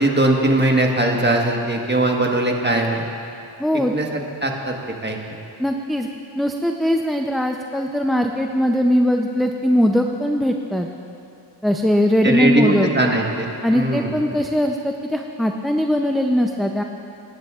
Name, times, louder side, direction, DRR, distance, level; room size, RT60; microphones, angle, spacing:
voice 1, 0.0-3.0 3.9-4.1 4.4-4.8 5.0-5.2 12.2-14.4, right 1 dB, 20° right, 1 dB, 1.4 m, -20 dB
voice 2, 3.6-3.9 5.6-6.1 6.4-10.9 11.6-12.9 13.6-16.8, equal, ahead, 3 dB, 0.5 m, -20 dB
22.0 x 10.5 x 2.4 m, 2.6 s
wide cardioid pair, 65°, 46 cm